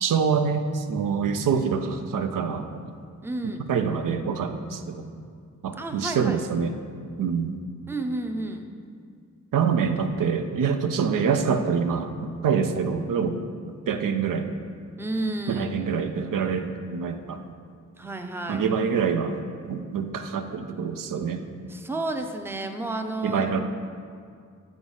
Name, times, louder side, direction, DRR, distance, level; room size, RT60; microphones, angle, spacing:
voice 1, 0.0-2.7 3.4-5.1 5.6-6.8 7.2-7.6 9.5-12.1 12.4-13.5 13.9-14.5 15.5-17.4 18.5-19.4 19.6-21.4 23.2-23.6, right 6 dB, 80° right, 7 dB, 0.5 m, -25 dB
voice 2, 3.2-3.6 5.8-6.4 7.9-8.7 15.0-15.7 18.0-18.7 21.7-23.6, right 2 dB, 5° right, 5 dB, 0.5 m, -31 dB
6.3 x 4.7 x 5.5 m, 2.2 s
wide cardioid pair, 70°, 32 cm